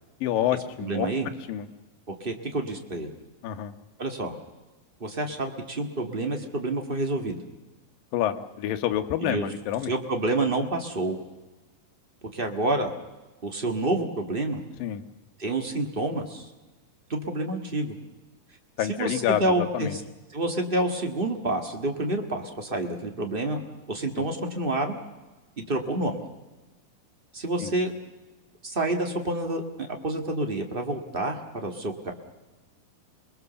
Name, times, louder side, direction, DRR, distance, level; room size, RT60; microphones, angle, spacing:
voice 1, 0.2-1.1 1.5-1.6 3.4-3.7 8.1-9.9 14.8-15.0 18.8-19.4 19.7-20.0 27.6-27.7, left 11 dB, 85° left, 8 dB, 2.8 m, -27 dB
voice 2, 0.8-1.3 2.2-3.1 4.0-4.3 5.0-7.4 9.2-9.5 9.9-11.2 12.3-12.9 13.4-14.6 15.4-16.5 17.1-18.0 18.9-20.0 20.3-23.6 23.9-25.0 25.6-26.2 27.3-27.9 28.6-32.1, right 2 dB, 30° right, 4 dB, 1.1 m, -28 dB
28.0 x 21.0 x 6.9 m, 1.2 s
omnidirectional pair, 3.9 m